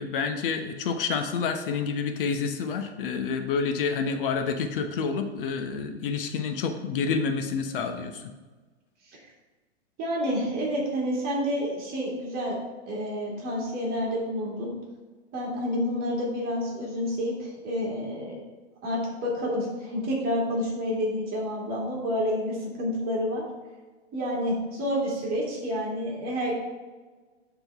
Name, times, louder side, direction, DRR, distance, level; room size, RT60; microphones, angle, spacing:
voice 1, 0.0-8.3, left 5 dB, 50° left, 6 dB, 0.9 m, -28 dB
voice 2, 10.0-12.6 12.9-14.7 15.3-18.4 18.8-23.5 24.1-26.6, equal, 25° right, -3 dB, 2.3 m, -29 dB
11.5 x 3.9 x 3.5 m, 1.3 s
hypercardioid pair, 145°, 34 cm